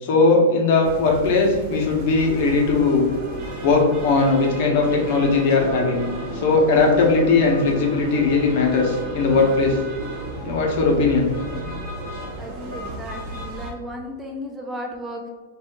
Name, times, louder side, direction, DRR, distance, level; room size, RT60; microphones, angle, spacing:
voice 1, 0.0-3.1 3.6-6.0 6.3-9.8 10.4-11.3, left 3 dB, 55° left, 0 dB, 0.8 m, -19 dB
sound 1, 0.8-13.7, right 1 dB, 35° right, 1.3 m, -33 dB
voice 2, 12.4-15.3, equal, 10° right, 1 dB, 0.4 m, -34 dB
3.5 x 2.5 x 2.6 m, 1.3 s
supercardioid pair, 145°, 0 cm